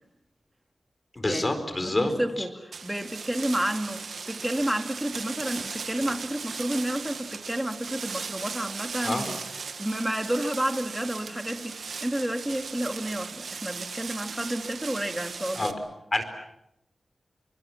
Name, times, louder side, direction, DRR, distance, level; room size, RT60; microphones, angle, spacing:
voice 1, 1.2-2.1 2.4-2.5 9.0-9.3 15.5-15.8 16.1-16.2, left 2 dB, 30° left, 8 dB, 4.3 m, -27 dB
voice 2, 1.8-15.7, right 1 dB, 10° right, 5 dB, 2.5 m, -31 dB
sound 1, 2.7-15.7, right 5 dB, 75° right, 1.8 m, -37 dB
29.5 x 25.5 x 7.3 m, 0.84 s
wide cardioid pair, 110°, 0 cm